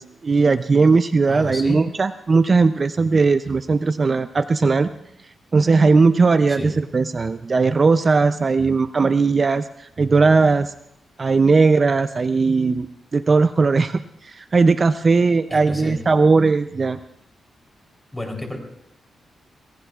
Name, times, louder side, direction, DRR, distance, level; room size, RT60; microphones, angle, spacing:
voice 1, 0.0-4.9 5.5-10.7 11.2-12.9 13.1-17.0, right 4 dB, 35° right, 11 dB, 0.5 m, -18 dB
voice 2, 1.3-1.8 6.5-6.7 15.5-16.0 18.1-18.6, left 1 dB, 10° left, 3 dB, 3.6 m, -30 dB
26.5 x 19.0 x 2.4 m, 0.76 s
cardioid pair, 105°, 0 cm